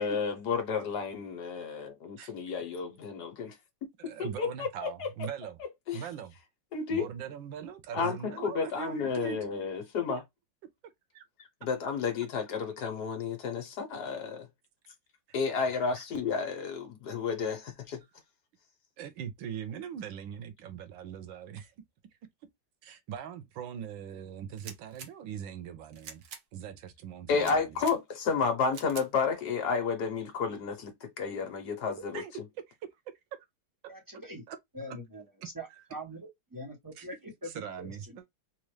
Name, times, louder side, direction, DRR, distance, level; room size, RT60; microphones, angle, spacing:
voice 1, 0.0-3.6 4.2-5.1 5.9-6.0 6.7-7.0 7.9-10.2 11.6-14.5 15.3-18.0 27.3-32.2, left 5 dB, 60° left, 1.4 m, -31 dB
voice 2, 4.0-5.6 5.9-6.3 6.9-9.4 10.8-11.2 15.7-16.0 19.0-21.7 22.8-26.2 26.5-27.8 32.0-32.3 32.7-32.8 34.5-35.0 35.8-35.9 37.0-37.1 37.4-38.2, right 9 dB, 85° right, 1.5 m, -41 dB
sound 1, 24.5-25.1 25.9-26.4 27.3-28.0 28.7-29.1, right 7 dB, 60° right, 1.1 m, -45 dB
voice 3, 33.9-34.4 34.7-35.2 35.5-37.1 37.4-37.5 37.8-37.9, equal, 15° right, 1.0 m, -42 dB
4.2 x 2.5 x 3.1 m
omnidirectional pair, 2.1 m